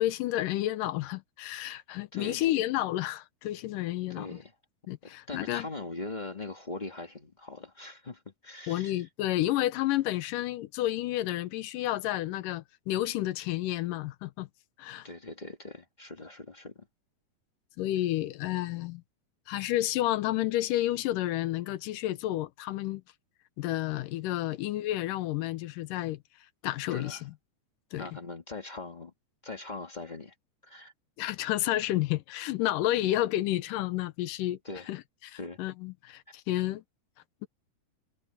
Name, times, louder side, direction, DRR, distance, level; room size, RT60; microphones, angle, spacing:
voice 1, 0.0-4.4 4.9-5.7 8.7-14.5 14.8-15.1 17.8-19.0 19.5-23.0 23.6-26.2 26.6-27.3 27.9-28.0 31.2-34.6 34.9-36.8, left 15 dB, 90° left, 2.4 m, -30 dB
voice 2, 2.1-2.5 4.1-4.5 5.0-9.1 15.0-16.9 24.5-24.6 26.9-27.2 28.0-29.1 29.4-30.3 30.6-30.9 32.9-33.0 34.6-34.9 35.4-35.6, left 2 dB, 40° left, 0.6 m, -41 dB
omnidirectional pair, 3.8 m